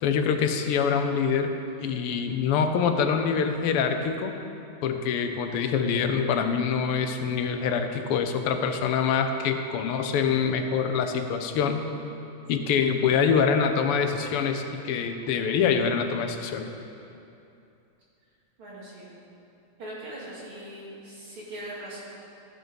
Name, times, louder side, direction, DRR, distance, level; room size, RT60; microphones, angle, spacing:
voice 1, 0.0-1.5 1.8-4.3 4.8-11.9 12.5-16.7, left 6 dB, 85° left, 6 dB, 1.7 m, -25 dB
voice 2, 18.6-19.1 19.8-22.0, right 1 dB, 70° right, -7 dB, 3.3 m, -40 dB
14.0 x 6.3 x 5.1 m, 2.7 s
omnidirectional pair, 2.4 m